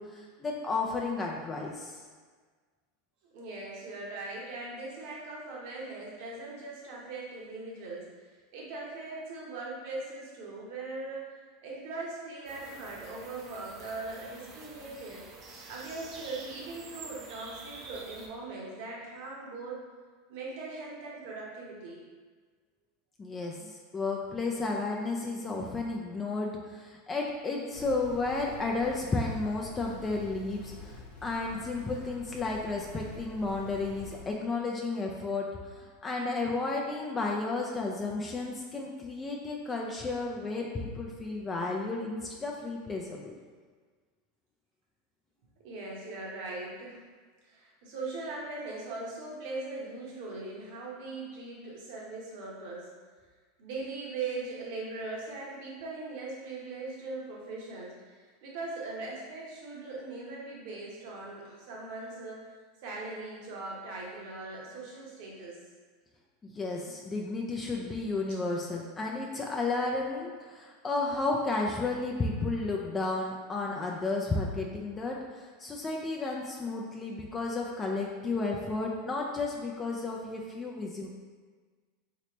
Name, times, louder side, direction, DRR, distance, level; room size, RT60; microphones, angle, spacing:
voice 1, 0.0-2.0 23.2-30.9 31.2-43.3 66.4-81.1, left 3 dB, 25° left, -1 dB, 0.4 m, -33 dB
voice 2, 3.2-8.1 8.5-15.3 15.7-19.8 20.3-22.0 45.6-47.0 47.4-52.9 53.6-62.6 62.8-65.6, right 3 dB, 60° right, -3 dB, 0.9 m, -40 dB
sound 1, 12.5-18.3, right 3 dB, 40° right, 0.6 m, -48 dB
sound 2, 27.7-34.2, left 3 dB, 80° left, 0.8 m, -47 dB
3.2 x 2.9 x 2.9 m, 1.5 s
hypercardioid pair, 90°, 0 cm